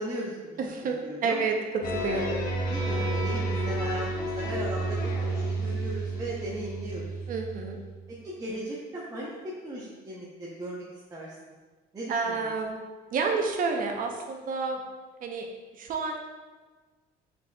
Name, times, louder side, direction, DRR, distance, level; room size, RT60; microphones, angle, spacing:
voice 1, 0.0-0.6 1.0-1.4 2.1-7.1 8.2-10.8 11.1-11.6 11.9-12.5, right 1 dB, 20° right, -6 dB, 0.8 m, -37 dB
voice 2, 0.6-2.3 7.3-7.8 12.1-12.8 13.1-14.8 15.2-15.5 15.7-16.3, right 4 dB, 55° right, 3 dB, 0.7 m, -29 dB
sound 1, 1.8-8.0, right 2 dB, 60° left, 0.9 m, -31 dB
5.7 x 4.0 x 2.3 m, 1.3 s
cardioid pair, 110°, 17 cm